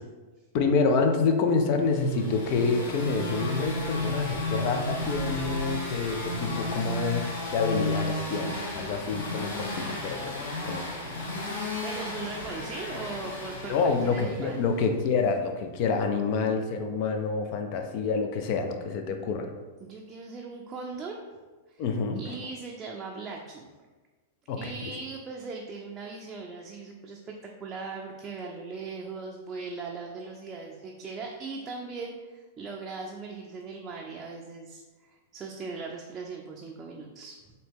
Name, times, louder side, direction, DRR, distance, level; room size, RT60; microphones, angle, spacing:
voice 1, 0.5-10.4 10.6-10.9 13.7-19.5 21.8-22.2 24.5-24.9, left 4 dB, 50° left, 6 dB, 0.5 m, -27 dB
sound 1, 1.8-14.8, left 1 dB, 70° left, 1.2 m, -34 dB
voice 2, 11.8-14.6 19.8-21.2 21.7-21.8 22.1-23.6 24.6-37.4, right 4 dB, 25° right, -1 dB, 0.5 m, -39 dB
4.0 x 2.8 x 3.6 m, 1.3 s
hypercardioid pair, 120°, 0 cm